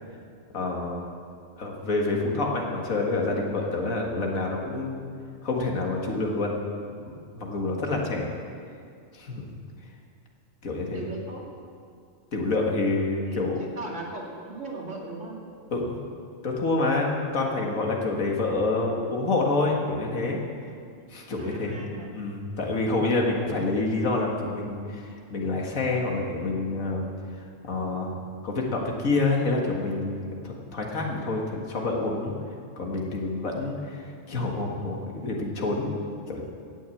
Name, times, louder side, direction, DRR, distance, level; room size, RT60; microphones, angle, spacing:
voice 1, 0.5-1.1 1.6-5.0 5.4-6.5 7.1-8.3 9.1-9.5 10.6-11.1 12.3-13.6 15.7-16.0 16.4-20.4 21.1-21.8 22.1-27.0 27.6-28.2 28.4-32.3 32.8-35.9 36.3-36.4, left 2 dB, 90° left, 0 dB, 2.1 m, -27 dB
voice 2, 10.9-11.5 13.3-15.4 21.0-21.1 21.4-22.1, right 2 dB, 65° right, -2 dB, 2.6 m, -38 dB
16.5 x 6.4 x 8.4 m, 2.3 s
omnidirectional pair, 1.4 m